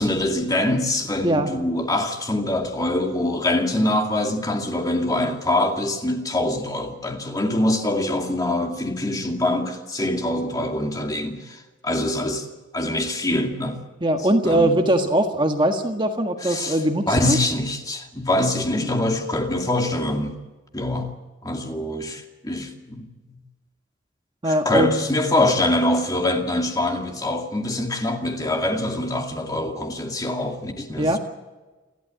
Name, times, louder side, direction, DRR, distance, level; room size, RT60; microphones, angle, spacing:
voice 1, 0.0-12.5 12.7-13.8 14.4-14.8 16.4-16.8 17.1-20.4 20.7-21.1 21.4-23.1 24.4-31.2, left 1 dB, 20° left, 2.3 m, -24 dB
voice 2, 14.0-17.4 18.8-19.2 24.4-25.1 31.0-31.2, right 1 dB, 25° right, 1.6 m, -21 dB
29.0 x 12.5 x 8.8 m
head